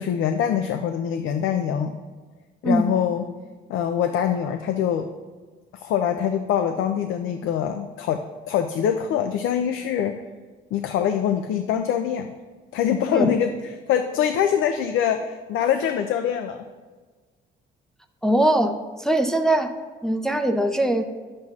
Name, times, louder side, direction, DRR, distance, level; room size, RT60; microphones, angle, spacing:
voice 1, 0.0-1.9 2.6-3.2 3.7-5.1 5.7-10.2 10.7-12.3 12.7-13.5 13.9-16.6, left 9 dB, 85° left, 7 dB, 0.4 m, -24 dB
voice 2, 18.2-18.7 19.0-19.7 20.0-21.0, right 1 dB, 5° left, 4 dB, 0.5 m, -21 dB
10.5 x 7.5 x 2.4 m, 1.4 s
cardioid pair, 90°, 20 cm